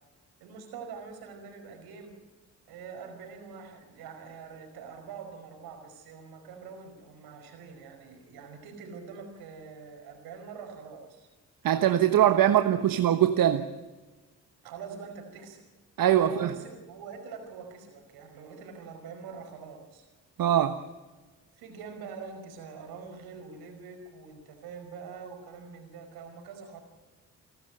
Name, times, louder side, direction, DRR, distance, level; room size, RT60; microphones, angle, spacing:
voice 1, 0.4-2.2 2.7-11.3 12.1-12.8 14.6-15.6 16.1-20.1 21.5-26.8, right 5 dB, 80° right, 5 dB, 5.1 m, -44 dB
voice 2, 11.6-13.6 16.0-16.5 20.4-20.8, right 11 dB, 65° right, 10 dB, 1.2 m, -22 dB
28.5 x 12.5 x 9.1 m, 1.3 s
hypercardioid pair, 50°, 36 cm